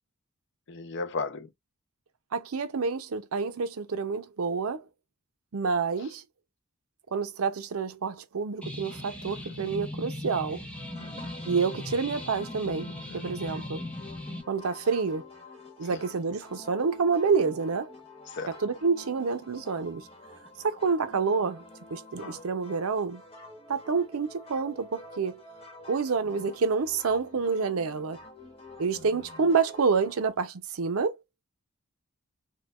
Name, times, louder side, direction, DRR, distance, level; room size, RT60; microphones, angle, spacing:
voice 1, 0.7-1.5 11.0-11.3 13.1-13.2 15.9-16.0 18.3-18.6 22.2-22.4, left 4 dB, 55° left, 0.5 m, -35 dB
voice 2, 2.3-4.8 5.5-6.2 7.1-10.6 11.5-13.8 14.5-15.3 15.8-17.9 18.6-20.0 20.6-21.6 21.9-23.2 23.7-25.4 25.9-28.2 28.8-31.2, right 5 dB, 90° right, 0.6 m, -28 dB
sound 1, 8.6-14.4, left 1 dB, 5° left, 0.5 m, -39 dB
sound 2, 10.7-30.3, left 2 dB, 30° left, 1.1 m, -48 dB
4.4 x 2.2 x 2.3 m
head